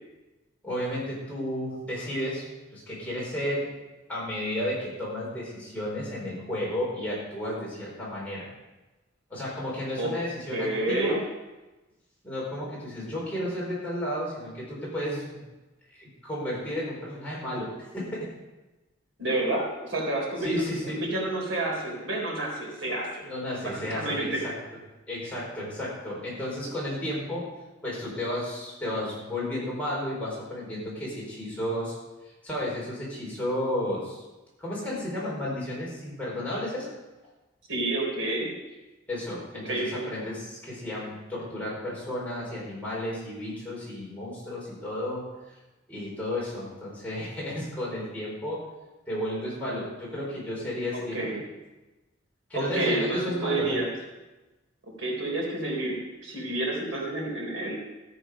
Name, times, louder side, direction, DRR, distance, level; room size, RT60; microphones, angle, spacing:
voice 1, 0.6-3.7 4.1-8.5 9.3-11.2 12.2-15.4 15.9-18.3 20.4-21.0 23.2-24.5 25.1-27.5 27.8-31.9 32.4-34.2 34.6-36.9 39.1-45.2 45.9-48.6 49.1-51.3 52.5-53.8, left 1 dB, 10° left, -6 dB, 4.7 m, -32 dB
voice 2, 10.5-11.2 19.2-20.6 20.9-23.2 23.6-24.4 37.7-38.5 39.7-40.1 50.9-51.4 52.5-53.9 54.8-57.8, right 2 dB, 85° right, -1 dB, 3.9 m, -29 dB
13.5 x 8.9 x 5.2 m, 1.1 s
head